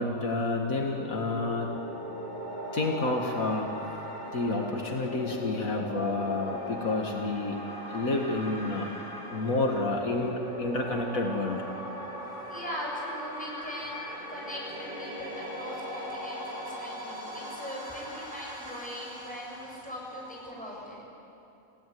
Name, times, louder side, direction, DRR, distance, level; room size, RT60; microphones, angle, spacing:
voice 1, 0.0-1.7 2.7-3.8 4.3-7.6 7.9-8.9 9.3-11.6, left 2 dB, 75° left, 1 dB, 2.3 m, -29 dB
sound 1, 0.7-20.5, equal, 30° right, 3.5 m, -39 dB
voice 2, 12.5-21.0, equal, 5° left, -4 dB, 7.1 m, -40 dB
28.0 x 17.0 x 9.4 m, 2.8 s
omnidirectional pair, 1.5 m